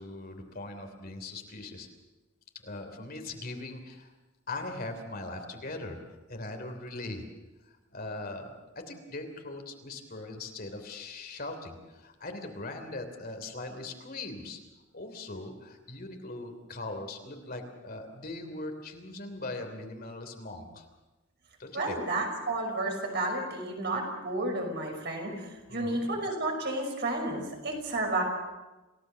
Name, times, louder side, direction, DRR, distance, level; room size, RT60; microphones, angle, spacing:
voice 1, 0.0-1.9 2.6-4.1 4.5-6.0 6.3-7.2 7.9-14.6 14.9-20.9 21.6-22.0 25.7-26.1, left 2 dB, 50° left, 5 dB, 3.1 m, -40 dB
voice 2, 21.7-28.2, right 2 dB, 55° right, 2 dB, 5.8 m, -31 dB
28.5 x 17.0 x 6.9 m, 1.1 s
head